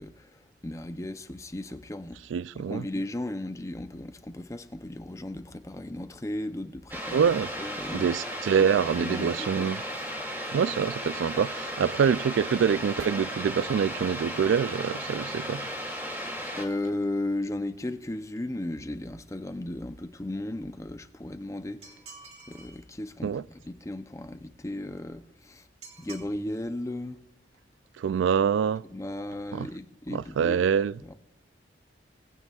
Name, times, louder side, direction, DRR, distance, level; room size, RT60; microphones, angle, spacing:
voice 1, 0.0-2.2 2.5-7.3 7.6-8.2 9.0-9.7 9.9-10.1 16.6-22.0 22.5-25.7 26.0-27.2 28.9-30.7 31.1-31.2, left 1 dB, 15° left, 0.5 m, -35 dB
voice 2, 2.3-2.9 7.1-7.5 7.9-9.8 10.5-15.7 23.2-23.4 28.0-28.8 29.5-29.7 30.1-31.0, right 7 dB, 85° right, 0.3 m, -25 dB
sound 1, 6.9-16.6, equal, 10° right, 2.5 m, -35 dB
sound 2, 21.8-22.8 25.8-26.3, right 4 dB, 35° right, 2.3 m, -47 dB
20.0 x 9.0 x 2.4 m
head